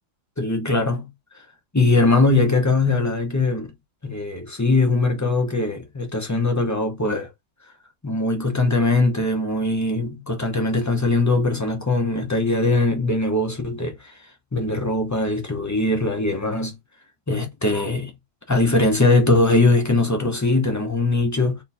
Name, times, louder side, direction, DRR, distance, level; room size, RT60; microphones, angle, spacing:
voice 1, 0.4-1.1 1.3-1.4 1.7-3.7 4.0-7.3 8.0-14.1 14.5-16.7 17.3-18.1 18.5-21.6, left 2 dB, 25° left, 0.4 m, -21 dB
3.6 x 2.2 x 4.2 m
omnidirectional pair, 1.6 m